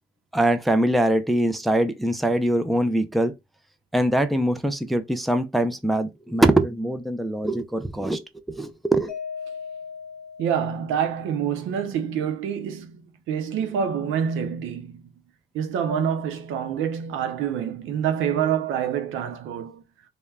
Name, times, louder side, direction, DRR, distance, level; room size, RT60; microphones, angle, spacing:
voice 1, 0.3-3.3 3.9-8.2 8.5-9.1, right 1 dB, ahead, 0.3 m, -22 dB
Mallet percussion, 9.1-11.3, left 6 dB, 45° left, 0.6 m, -38 dB
voice 2, 10.4-13.0 13.3-15.1 15.5-19.8, right 8 dB, 85° right, 0.5 m, -26 dB
2.2 x 2.1 x 3.3 m
cardioid pair, 90°, 20 cm